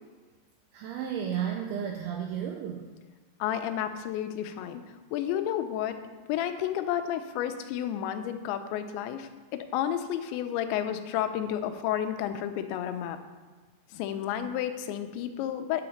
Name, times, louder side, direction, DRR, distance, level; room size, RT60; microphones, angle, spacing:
voice 1, 0.7-2.9, right 8 dB, 85° right, 2 dB, 2.3 m, -33 dB
voice 2, 3.4-4.8 5.1-6.0 6.3-13.2 13.9-15.9, left 10 dB, 90° left, 8 dB, 3.0 m, -31 dB
8.8 x 5.1 x 7.1 m, 1.4 s
omnidirectional pair, 5.1 m